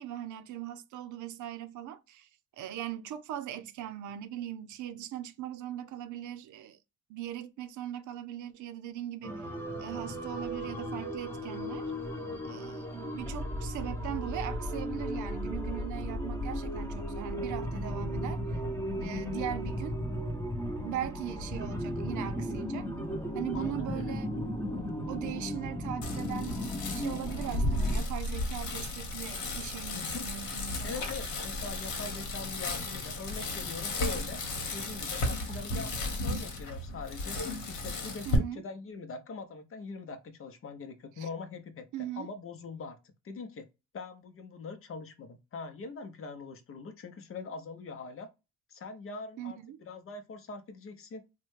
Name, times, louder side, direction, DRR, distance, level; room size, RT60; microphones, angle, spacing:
voice 1, 0.0-2.3 2.6-6.8 7.1-9.5 9.8-11.9 12.4-18.6 19.0-20.0 20.8-22.9 23.3-24.3 25.1-26.6 26.9-31.1 38.2-38.6 41.2-41.3 41.9-42.3 49.4-49.8, right 11 dB, 75° right, 0.5 m, -39 dB
sound 1, 9.2-28.0, equal, 10° left, 0.8 m, -35 dB
voice 2, 23.5-24.0 29.9-30.2 30.8-34.4 34.7-37.4 37.7-41.9 42.2-43.0 43.2-43.6 43.9-48.3 48.7-51.2, left 4 dB, 45° left, 0.7 m, -42 dB
Bicycle, 26.0-38.4, left 2 dB, 70° left, 1.1 m, -34 dB
3.1 x 2.2 x 3.1 m
cardioid pair, 90°, 30 cm